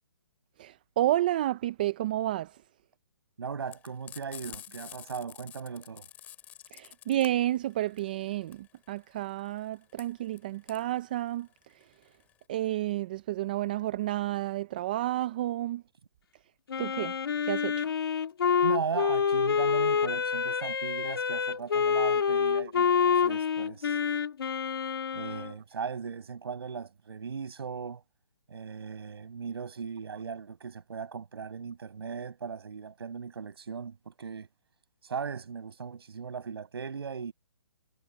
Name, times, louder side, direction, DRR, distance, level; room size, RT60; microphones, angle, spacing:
voice 1, 0.6-2.6 6.7-11.9 12.5-15.8 16.8-17.1 17.4-17.9, right 14 dB, 20° right, 0.4 m, -31 dB
voice 2, 3.4-6.1 18.6-24.0 25.1-28.0 28.5-34.5 35.0-37.3, right 6 dB, 75° right, 6.0 m, -38 dB
Frying (food), 3.7-12.4, left 12 dB, 10° left, 3.6 m, -48 dB
Wind instrument woodwind instrument, 16.7-25.6, left 6 dB, 65° left, 2.9 m, -27 dB
hypercardioid pair, 170°, 13 cm